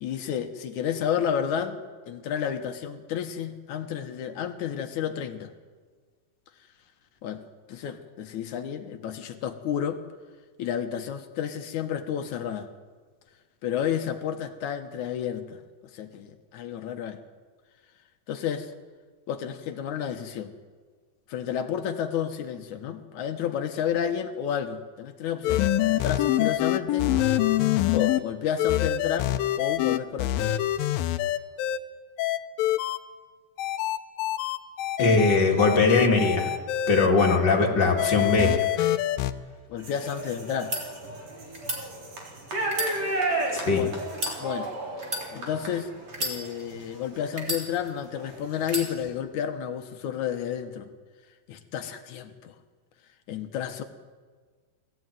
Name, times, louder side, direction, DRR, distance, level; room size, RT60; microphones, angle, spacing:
voice 1, 0.0-5.5 7.2-7.4 7.7-10.0 10.6-12.7 13.6-15.6 15.9-17.2 18.3-18.7 19.3-20.5 21.3-27.1 27.9-30.6 39.7-40.7 43.2-43.4 43.7-44.0 44.4-44.7 45.3-45.9 46.2-50.9 51.5-52.5 53.3-53.8, left 8 dB, 65° left, 7 dB, 2.4 m, -31 dB
sound 1, 25.4-28.2 28.6-31.8 32.2-33.0 33.6-37.4 38.0-39.3, left 13 dB, 80° left, 2.5 m, -25 dB
voice 2, 35.0-36.5 36.9-38.9 43.5-43.9, left 4 dB, 35° left, 1 dB, 2.6 m, -21 dB
sound 2, 39.8-47.5 48.0-49.1, right 2 dB, 45° right, 4.9 m, -33 dB
sound 3, 40.5-40.8 41.5-41.8 42.6-43.6 44.1-44.4 45.0-45.3 46.1-46.8 47.4-48.1 48.6-48.9, equal, 20° right, 3.1 m, -32 dB
21.5 x 15.5 x 9.3 m, 1.5 s
omnidirectional pair, 4.1 m